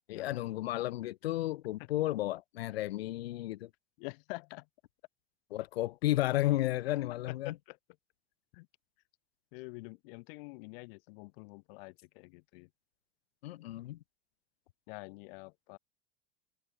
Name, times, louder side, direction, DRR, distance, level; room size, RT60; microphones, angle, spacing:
voice 1, 0.1-3.7 5.5-7.5 13.4-14.0, left 15 dB, 90° left, 1.7 m, -33 dB
voice 2, 4.0-4.7 7.3-7.8 8.5-8.7 9.5-12.7 14.9-15.8, left 28 dB, 70° left, 1.6 m, -47 dB
supercardioid pair, 105°, 30 cm